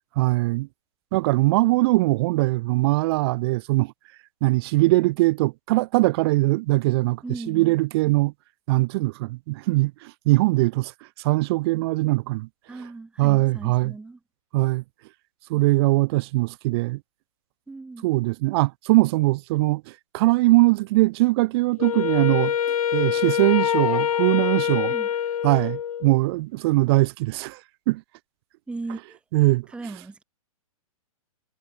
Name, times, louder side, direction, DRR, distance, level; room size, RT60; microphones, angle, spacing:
voice 1, 0.2-0.7 1.1-3.9 4.4-8.3 8.7-10.9 11.2-12.5 13.2-13.9 14.5-14.8 15.5-17.0 18.0-22.5 22.9-24.9 25.4-27.6 27.9-28.0 29.3-29.7, right 21 dB, 45° right, 1.7 m, -21 dB
voice 2, 7.2-7.8 12.7-14.2 17.7-18.1 24.9-25.1 28.7-29.2 29.7-30.2, right 3 dB, 5° right, 1.2 m, -37 dB
Wind instrument woodwind instrument, 21.8-26.2, left 9 dB, 80° left, 0.8 m, -25 dB
hypercardioid pair, 135°, 18 cm